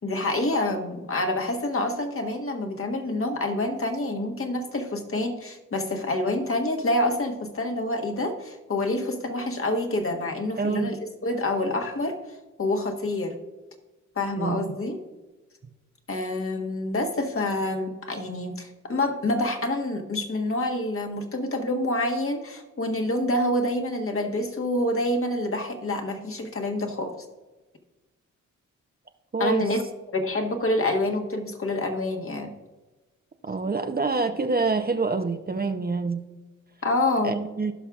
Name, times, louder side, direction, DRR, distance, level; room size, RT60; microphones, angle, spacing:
voice 1, 0.0-11.0 11.2-12.2 12.6-13.4 14.1-15.0 16.1-27.1 29.4-29.8 30.1-32.5 36.8-37.4, left 1 dB, 40° left, 3 dB, 1.5 m, -27 dB
voice 2, 10.6-11.0 14.4-14.7 29.3-29.7 33.4-36.2 37.2-37.7, right 4 dB, 30° right, 7 dB, 0.8 m, -26 dB
16.5 x 5.6 x 2.4 m, 1.1 s
supercardioid pair, 50°, 33 cm